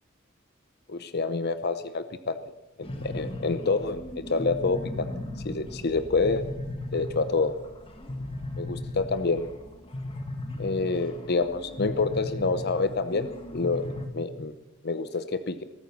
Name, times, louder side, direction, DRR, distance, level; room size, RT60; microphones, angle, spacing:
voice 1, 0.9-2.4 2.8-4.0 4.3-5.1 5.4-6.5 6.9-7.5 8.6-9.5 10.6-14.5 14.8-15.6, left 3 dB, 55° left, 11 dB, 0.8 m, -27 dB
sound 1, 2.8-14.1, left 1 dB, 30° left, 1.6 m, -37 dB
20.0 x 9.1 x 7.3 m, 1.0 s
head